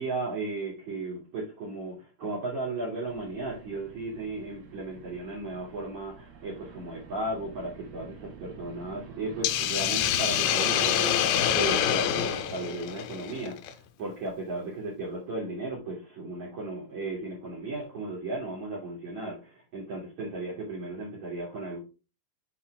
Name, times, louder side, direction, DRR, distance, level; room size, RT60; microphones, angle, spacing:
voice 1, 0.0-21.8, right 2 dB, 50° right, -2 dB, 3.3 m, -35 dB
sound 1, 3.1-12.4, right 9 dB, 85° right, 3.5 m, -45 dB
Hiss, 9.4-13.7, left 11 dB, 80° left, 2.6 m, -26 dB
7.6 x 4.6 x 4.6 m, 0.31 s
omnidirectional pair, 4.8 m